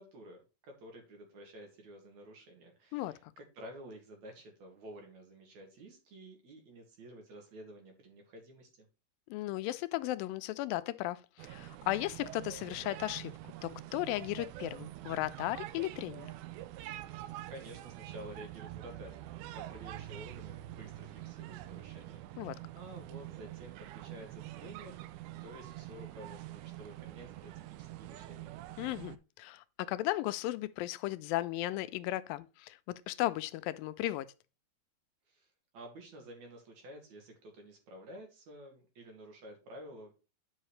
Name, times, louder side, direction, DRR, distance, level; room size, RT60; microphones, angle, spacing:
voice 1, 0.0-8.9 17.5-19.2 19.5-25.0 25.4-28.5 35.3-35.5 35.7-40.1, right 1 dB, 55° right, 3.3 m, -51 dB
voice 2, 2.9-3.3 9.3-16.3 22.4-22.6 28.8-34.3, left 16 dB, 90° left, 2.3 m, -36 dB
sound 1, 11.4-29.2, right 15 dB, 85° right, 1.8 m, -46 dB
9.8 x 5.5 x 3.2 m
omnidirectional pair, 4.0 m